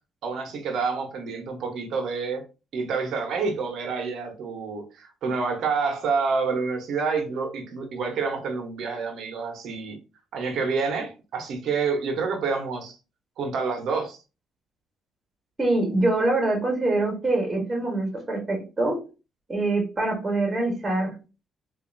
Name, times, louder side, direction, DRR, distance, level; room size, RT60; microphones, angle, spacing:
voice 1, 0.2-2.4 2.7-10.0 10.3-13.0 13.4-14.2, right 4 dB, 75° right, 1.0 m, -28 dB
voice 2, 15.6-19.0 19.5-21.2, right 2 dB, 20° right, 1.5 m, -24 dB
3.7 x 2.7 x 2.6 m
cardioid pair, 90°, 0 cm